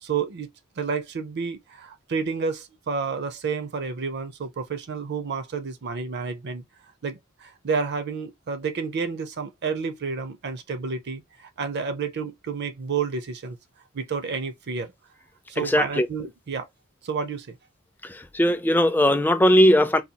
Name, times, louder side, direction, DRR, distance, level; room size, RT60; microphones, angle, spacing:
voice 1, 0.0-0.5 0.8-6.6 7.0-13.6 13.9-14.9 15.5-16.7 17.0-17.6, right 5 dB, 55° right, 0.5 m, -30 dB
voice 2, 15.6-16.1 18.0-20.0, equal, 10° left, 0.4 m, -19 dB
4.0 x 2.3 x 2.7 m
head